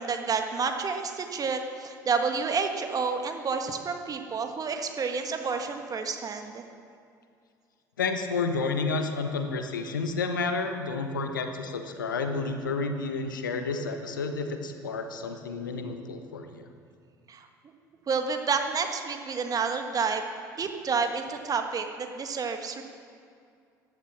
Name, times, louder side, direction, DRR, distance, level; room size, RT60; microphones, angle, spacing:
voice 1, 0.0-6.6 17.3-17.5 18.1-20.3 20.6-22.8, right 5 dB, 35° right, 5 dB, 1.6 m, -29 dB
voice 2, 8.0-16.7, left 4 dB, 80° left, 6 dB, 1.1 m, -30 dB
15.0 x 11.5 x 6.0 m, 2.3 s
figure-of-eight pair, 60°, 10 cm